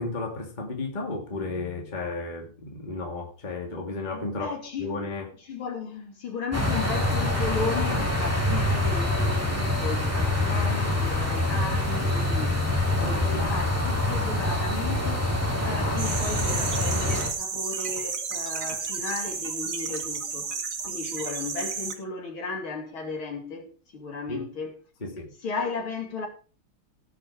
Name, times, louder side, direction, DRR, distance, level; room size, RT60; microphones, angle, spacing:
voice 1, 0.0-4.5 4.8-5.3 13.0-13.5 24.3-24.4 25.0-25.3, left 3 dB, 20° left, 2.1 m, -33 dB
voice 2, 4.1-5.0 5.4-24.8 25.4-26.3, left 4 dB, 80° left, 3.9 m, -35 dB
sound 1, 6.5-17.3, left 1 dB, 5° right, 2.6 m, -25 dB
sound 2, 16.0-21.9, right 5 dB, 45° right, 1.7 m, -32 dB
17.5 x 6.2 x 4.8 m
omnidirectional pair, 2.3 m